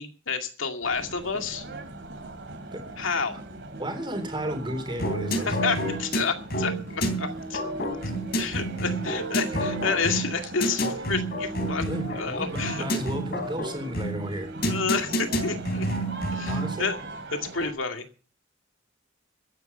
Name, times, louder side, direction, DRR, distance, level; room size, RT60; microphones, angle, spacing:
voice 1, 0.0-1.6 3.0-3.3 5.3-7.6 8.4-12.9 14.7-15.9 16.3-17.0 17.3-18.0, left 5 dB, 75° left, 6 dB, 2.2 m, -30 dB
sound 1, 0.8-17.7, right 2 dB, 60° right, 2.7 m, -39 dB
voice 2, 2.7-3.4 3.8-5.6 9.4-9.6 10.8-10.9 11.9-12.1 12.4-14.5 16.5-16.9, equal, 25° right, 6 dB, 3.5 m, -33 dB
sound 2, 5.0-16.8, right 1 dB, 50° left, 3.3 m, -29 dB
14.0 x 10.5 x 6.8 m, 0.38 s
head